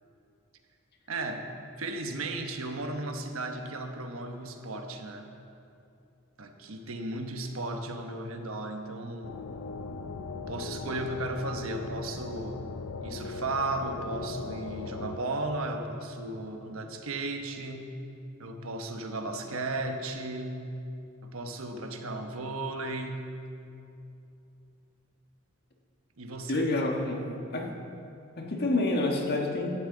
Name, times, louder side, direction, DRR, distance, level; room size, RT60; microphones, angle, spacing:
voice 1, 1.1-1.5 1.8-5.3 6.4-9.4 10.3-12.6 13.0-17.9 18.4-20.6 21.2-23.3 26.2-26.7, right 2 dB, 70° right, 5 dB, 1.1 m, -35 dB
sound 1, 9.2-15.2, left 4 dB, 85° left, 0.5 m, -39 dB
voice 2, 26.5-27.7 28.4-29.7, left 2 dB, 50° left, 2 dB, 1.4 m, -28 dB
16.5 x 12.0 x 3.9 m, 2.7 s
head